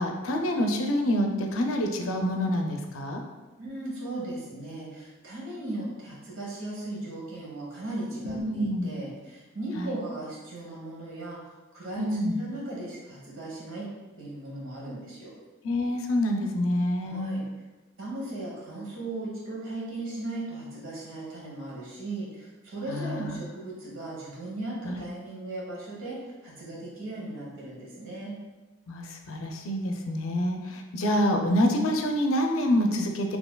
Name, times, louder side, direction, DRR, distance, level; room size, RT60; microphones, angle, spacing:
voice 1, 0.0-3.2 8.2-8.9 9.8-9.9 12.0-12.4 15.6-17.4 22.9-23.4 24.8-25.0 28.9-33.4, equal, 85° left, 3 dB, 0.5 m, -27 dB
voice 2, 3.6-11.4 11.7-13.9 14.2-15.3 17.0-17.4 18.0-26.2 26.4-28.4, right 2 dB, 80° right, -5 dB, 1.2 m, -37 dB
4.4 x 2.8 x 2.2 m, 1.2 s
head